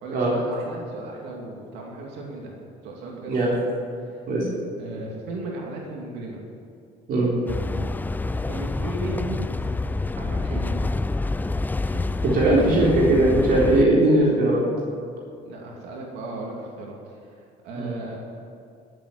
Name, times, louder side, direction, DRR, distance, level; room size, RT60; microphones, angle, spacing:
voice 1, 0.0-2.6 2.8-3.5 4.1-4.2 4.8-6.4 7.1-7.4 8.5-9.4 10.2-10.8 11.9-12.7 15.4-18.2, right 2 dB, 90° right, -1 dB, 2.5 m, -36 dB
voice 2, 3.3-3.6 4.3-4.5 7.1-7.3 12.2-14.6 17.7-17.9, right 1 dB, 60° right, -5 dB, 3.9 m, -19 dB
sound 1, 7.5-13.8, left 2 dB, 10° left, 0.4 m, -27 dB
14.0 x 7.7 x 10.0 m, 2.4 s
cardioid pair, 110°, 17 cm